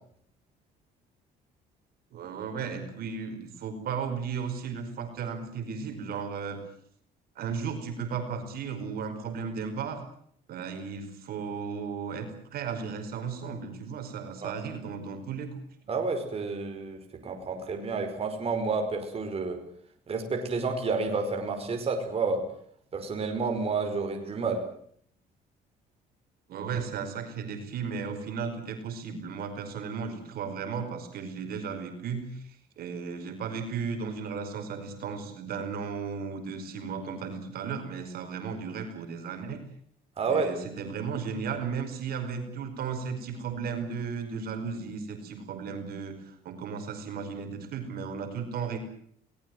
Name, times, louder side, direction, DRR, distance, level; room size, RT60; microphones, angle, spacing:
voice 1, 2.1-6.6 7.4-10.0 10.5-15.6 26.5-39.6 40.3-48.8, right 6 dB, 65° right, 6 dB, 5.1 m, -35 dB
voice 2, 15.9-19.6 20.1-22.4 22.9-24.6 40.2-40.5, right 4 dB, 35° right, 4 dB, 5.0 m, -30 dB
22.5 x 19.5 x 7.9 m, 0.63 s
cardioid pair, 110°, 17 cm